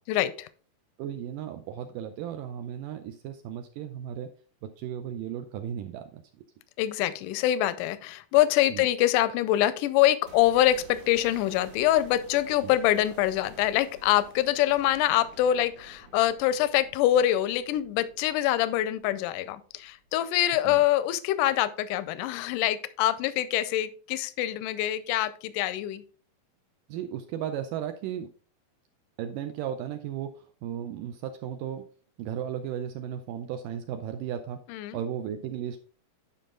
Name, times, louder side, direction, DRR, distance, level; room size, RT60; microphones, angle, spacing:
voice 1, 0.1-0.5 6.8-26.0 34.7-35.0, left 13 dB, 80° left, 14 dB, 1.9 m, -25 dB
voice 2, 1.0-4.3 4.6-6.4 8.7-8.9 12.6-12.7 20.6-20.8 26.9-28.3 29.2-31.9 32.2-34.6 34.9-35.8, right 9 dB, 80° right, 7 dB, 2.0 m, -35 dB
sound 1, 10.3-20.3 20.6-20.7, right 3 dB, 60° right, 2.8 m, -52 dB
10.0 x 5.6 x 3.8 m, 0.39 s
omnidirectional pair, 4.4 m